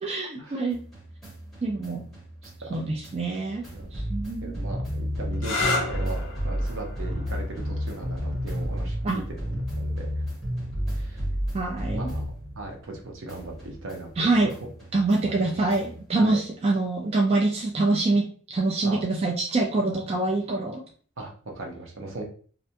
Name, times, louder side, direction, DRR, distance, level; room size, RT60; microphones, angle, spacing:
voice 1, 0.0-0.8 1.6-2.0 2.7-3.6 3.9-4.6 9.0-9.2 11.5-12.1 14.2-14.5 14.9-20.8, right 2 dB, 30° right, -1 dB, 0.3 m, -25 dB
sound 1, 0.7-13.0 13.3-16.0, equal, ahead, 1.0 m, -32 dB
voice 2, 4.4-10.3 10.9-11.2 11.9-12.2 12.6-14.5 15.2-15.7 16.2-16.4 18.8-19.0 21.2-22.2, right 2 dB, 70° right, 1 dB, 0.7 m, -38 dB
sound 2, 5.3-12.8 13.8-14.3 17.8-18.2, left 3 dB, 65° left, 0.6 m, -36 dB
2.5 x 2.1 x 2.7 m, 0.43 s
head